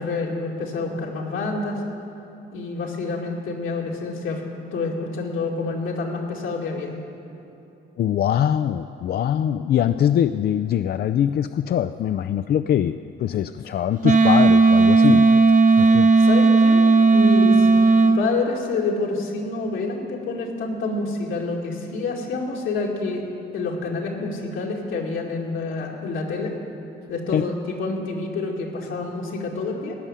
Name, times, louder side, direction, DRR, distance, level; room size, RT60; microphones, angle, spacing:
voice 1, 0.0-1.8 2.5-4.4 4.7-6.9 16.2-17.7 18.1-23.2 23.5-26.5 27.1-29.9, left 3 dB, 80° left, -1 dB, 2.3 m, -28 dB
voice 2, 8.0-15.4 15.8-16.1 27.3-27.4, left 10 dB, 55° left, 10 dB, 0.4 m, -22 dB
Wind instrument woodwind instrument, 14.0-18.2, right 3 dB, 40° right, 0.8 m, -15 dB
16.5 x 6.1 x 10.0 m, 2.9 s
cardioid pair, 90°, 20 cm